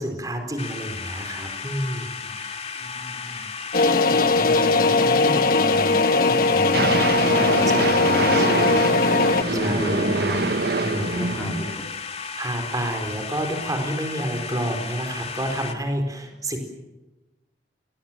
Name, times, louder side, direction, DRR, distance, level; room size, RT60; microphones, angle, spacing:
voice 1, 0.0-2.1 7.4-8.8 9.3-9.8 10.2-10.3 11.1-11.5 12.4-16.6, right 1 dB, 20° right, 5 dB, 4.5 m, -29 dB
sound 1, 0.6-15.7, left 5 dB, 35° left, 2.4 m, -34 dB
voice 2, 2.8-3.5 3.9-7.7 8.1-8.8 9.5-11.7 13.0-13.1, left 1 dB, 10° left, 1 dB, 3.8 m, -33 dB
sound 2, 3.7-9.4, left 3 dB, 55° left, 1.2 m, -19 dB
sound 3, 6.7-11.8, right 3 dB, 60° right, 1.0 m, -25 dB
29.5 x 20.5 x 7.6 m, 1.1 s
head